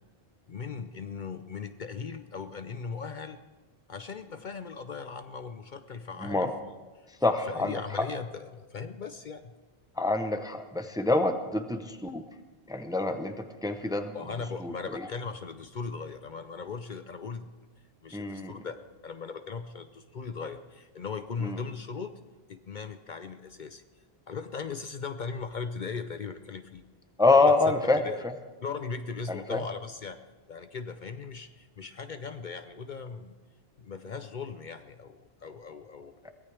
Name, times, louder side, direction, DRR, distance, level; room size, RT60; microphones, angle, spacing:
voice 1, 0.5-3.4 3.9-6.5 7.2-9.5 14.1-17.5 18.0-22.1 22.5-23.8 24.3-26.8 27.3-27.6 28.0-28.2 28.6-30.2 30.5-33.4 33.8-36.2, left 5 dB, 55° left, 10 dB, 0.7 m, -38 dB
voice 2, 6.2-6.5 7.2-8.1 10.0-12.2 12.7-14.2 14.6-15.1 18.1-18.5 21.4-21.6 27.2-28.3 29.3-29.6, left 3 dB, 5° right, 7 dB, 0.7 m, -26 dB
22.5 x 17.0 x 3.4 m, 1.3 s
omnidirectional pair, 1.1 m